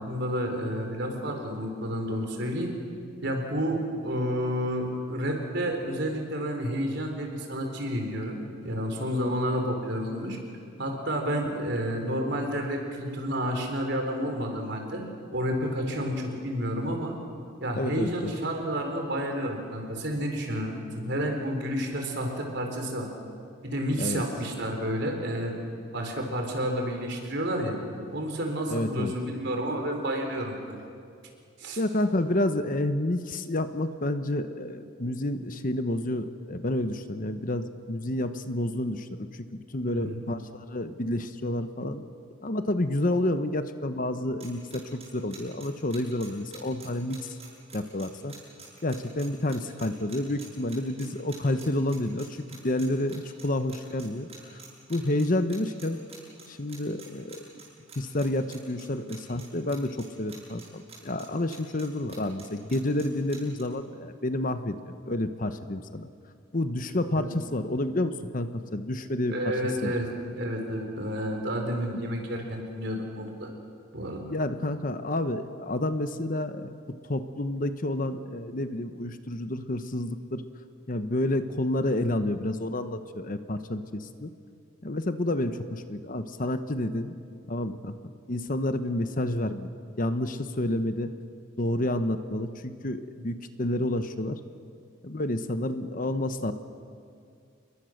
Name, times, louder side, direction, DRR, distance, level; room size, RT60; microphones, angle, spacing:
voice 1, 0.0-2.7 3.2-10.4 10.8-15.0 15.3-17.2 17.6-23.1 23.6-25.6 25.9-27.8 28.1-30.8 31.6-31.8 39.8-40.2 67.2-67.3 69.3-73.5 73.9-74.2, equal, 55° right, 3 dB, 4.2 m, -30 dB
voice 2, 17.8-18.3 24.0-24.2 28.7-29.1 31.8-39.1 39.4-42.1 42.4-47.3 47.7-48.3 48.8-54.6 54.9-56.0 56.5-57.4 58.0-66.1 66.5-69.3 69.8-69.9 74.3-76.7 77.1-80.4 80.9-84.3 84.8-87.2 87.5-88.0 88.3-89.7 90.0-91.1 91.6-94.4 95.0-96.5, left 1 dB, 40° left, 10 dB, 1.0 m, -29 dB
sound 1, 44.4-63.6, right 6 dB, 30° right, 7.5 m, -47 dB
29.0 x 22.0 x 6.6 m, 2.4 s
head